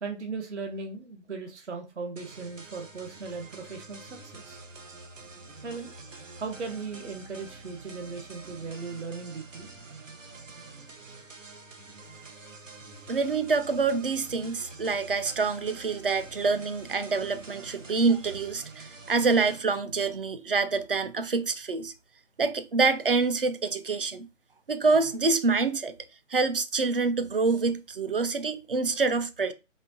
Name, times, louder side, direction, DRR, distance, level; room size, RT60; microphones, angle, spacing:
voice 1, 0.0-4.6 5.6-5.9 6.4-9.7 10.6-10.7 11.2-11.3, right 4 dB, 65° right, 1.1 m, -38 dB
sound 1, 2.2-19.6, right 3 dB, 85° right, 1.0 m, -47 dB
voice 2, 13.1-21.9 22.4-24.3 24.7-25.9 26.3-29.5, right 4 dB, 45° right, 0.5 m, -26 dB
4.2 x 3.6 x 2.7 m
figure-of-eight pair, 160°, 38 cm